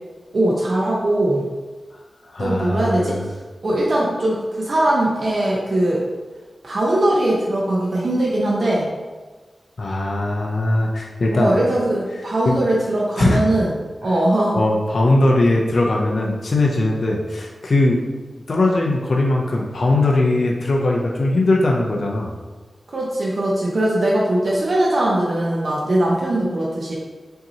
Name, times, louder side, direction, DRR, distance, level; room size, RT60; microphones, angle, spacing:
voice 1, 0.3-1.4 2.4-3.2 3.6-6.0 6.6-8.9 11.3-13.7 14.0-14.6 22.9-27.0, right 1 dB, 55° right, -4 dB, 0.7 m, -20 dB
voice 2, 2.3-3.3 9.8-11.5 12.5-12.6 13.2-13.4 14.5-18.0 18.5-22.3, left 2 dB, 60° left, -1 dB, 0.5 m, -19 dB
5.5 x 2.8 x 2.7 m, 1.3 s
wide cardioid pair, 125°, 0 cm